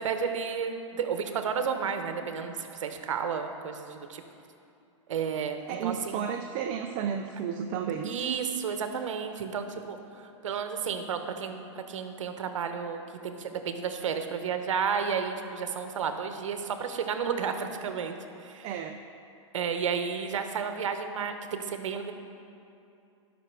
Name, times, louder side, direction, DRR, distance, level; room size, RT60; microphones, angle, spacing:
voice 1, 0.0-4.2 5.1-6.2 8.0-18.7 19.5-22.1, right 6 dB, 70° right, 7 dB, 1.0 m, -32 dB
voice 2, 5.7-8.1 18.6-19.0, right 7 dB, 40° right, 4 dB, 0.6 m, -32 dB
12.0 x 6.0 x 6.1 m, 2.6 s
hypercardioid pair, 120°, 17 cm